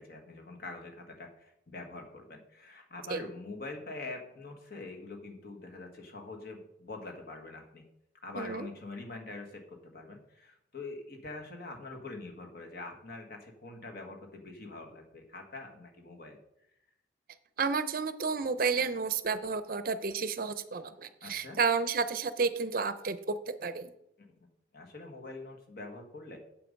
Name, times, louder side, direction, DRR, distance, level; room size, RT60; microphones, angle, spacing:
voice 1, 0.0-7.8 8.2-16.4 21.2-21.6 24.2-24.3 24.7-26.4, left 3 dB, 55° left, 3 dB, 1.6 m, -44 dB
voice 2, 8.3-8.7 17.6-23.9, right 5 dB, 50° right, 12 dB, 0.6 m, -31 dB
7.8 x 7.7 x 5.2 m, 0.81 s
head